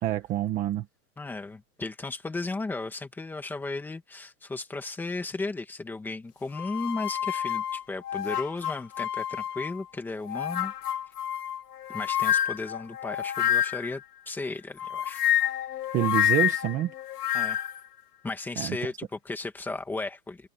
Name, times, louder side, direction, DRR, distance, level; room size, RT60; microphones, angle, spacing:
voice 1, 0.0-0.8 15.9-16.9 18.6-18.8, right 14 dB, 15° right, 1.4 m, -27 dB
voice 2, 1.2-10.7 11.9-15.2 17.3-17.6 18.2-20.5, left 3 dB, 5° left, 1.9 m, -35 dB
sound 1, 6.5-9.8 10.3-14.0 14.8-17.8, left 11 dB, 80° left, 2.2 m, -28 dB
supercardioid pair, 175°, 46 cm